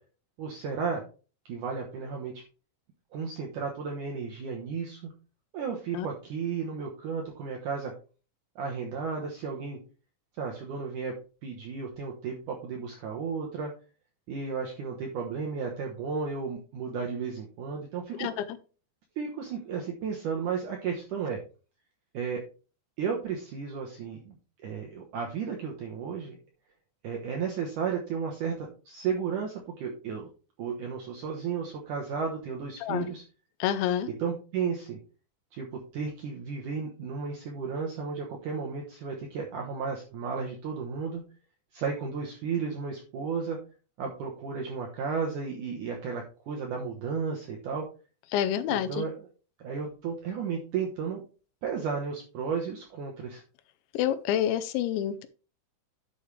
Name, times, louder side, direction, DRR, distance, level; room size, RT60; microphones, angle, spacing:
voice 1, 0.4-1.0 1.5-2.4 3.1-5.1 5.5-7.9 8.6-9.8 10.4-11.1 11.4-13.7 14.3-18.3 19.2-21.4 22.1-22.4 23.0-26.4 27.0-30.3 30.6-33.2 34.2-35.0 35.5-41.2 41.7-43.6 44.0-47.9 48.7-49.3 49.6-51.2 51.6-53.4, right 6 dB, 85° right, 1 dB, 1.7 m, -33 dB
voice 2, 33.6-34.1 48.3-49.0 54.0-55.3, left 10 dB, 80° left, 11 dB, 3.0 m, -27 dB
11.0 x 6.6 x 3.3 m, 0.36 s
omnidirectional pair, 5.4 m